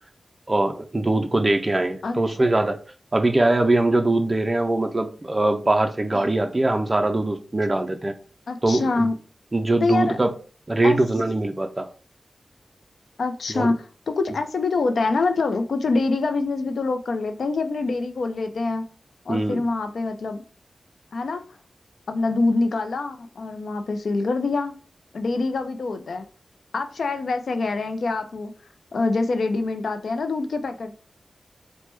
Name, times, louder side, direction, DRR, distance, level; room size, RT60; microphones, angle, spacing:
voice 1, 0.5-2.8 3.1-8.1 8.6-9.1 9.5-10.3 10.7-11.9 13.5-13.7 19.3-19.6, right 2 dB, 25° right, 0.3 m, -22 dB
voice 2, 8.5-9.2 9.8-10.2 10.8-11.0 13.2-18.9 19.3-20.4 21.1-21.4 22.1-24.7 25.1-26.2 26.7-28.5 28.9-30.9, left 3 dB, 90° left, 0.4 m, -25 dB
3.2 x 2.0 x 3.0 m
wide cardioid pair, 120°, 0 cm